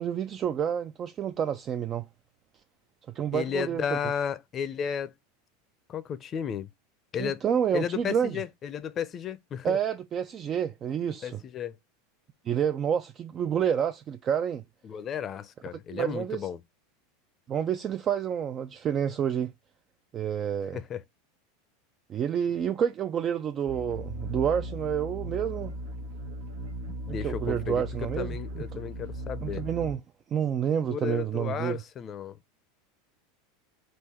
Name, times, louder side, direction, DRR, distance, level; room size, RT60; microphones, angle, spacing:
voice 1, 0.0-2.1 3.1-4.0 7.2-8.4 9.6-11.4 12.4-14.6 15.9-16.5 17.5-19.5 20.1-20.8 22.1-25.7 27.1-28.8 29.4-30.0 30.3-31.8, right 8 dB, 35° right, 0.3 m, -29 dB
voice 2, 3.3-5.1 5.9-6.7 7.1-7.4 7.7-9.8 11.2-11.8 14.8-16.6 20.7-21.0 27.1-27.8 28.2-29.6 30.8-32.4, left 8 dB, 35° left, 0.5 m, -33 dB
sound 1, 23.7-29.9, equal, 85° right, 1.1 m, -37 dB
3.7 x 2.6 x 4.2 m
supercardioid pair, 115°, 0 cm